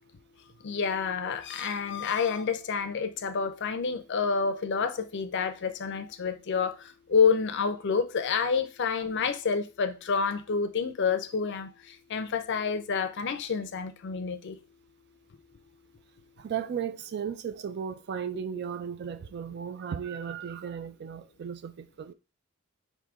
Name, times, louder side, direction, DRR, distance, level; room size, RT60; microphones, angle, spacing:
voice 1, 0.6-14.6, left 5 dB, 55° left, 0.5 m, -28 dB
voice 2, 16.4-22.1, right 7 dB, 50° right, 0.3 m, -35 dB
4.7 x 2.7 x 3.6 m
head